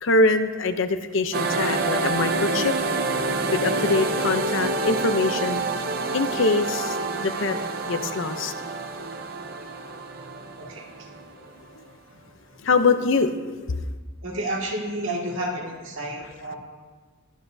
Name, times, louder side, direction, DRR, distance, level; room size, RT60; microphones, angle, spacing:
voice 1, 0.0-2.8 3.5-5.6 6.1-7.6 7.9-8.5 11.8-11.9 12.6-13.9, left 3 dB, 60° left, 9 dB, 0.6 m, -23 dB
sound 1, 1.3-11.6, right 3 dB, 45° right, 0.7 m, -27 dB
voice 2, 14.2-16.6, right 1 dB, 65° right, -1 dB, 2.0 m, -30 dB
21.5 x 8.2 x 2.7 m, 1.4 s
head